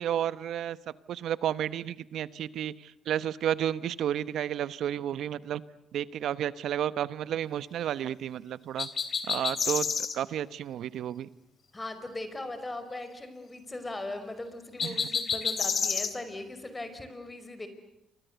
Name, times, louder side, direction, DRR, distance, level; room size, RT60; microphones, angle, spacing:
voice 1, 0.0-5.6 5.9-8.9 9.3-11.3 14.8-15.0, right 10 dB, 75° right, 16 dB, 1.0 m, -32 dB
sound 1, 8.8-10.2 14.8-16.1, left 6 dB, 45° left, 3.2 m, -29 dB
voice 2, 11.7-17.7, left 2 dB, 20° left, 10 dB, 5.1 m, -39 dB
29.0 x 24.5 x 8.1 m, 0.80 s
cardioid pair, 90°, 0 cm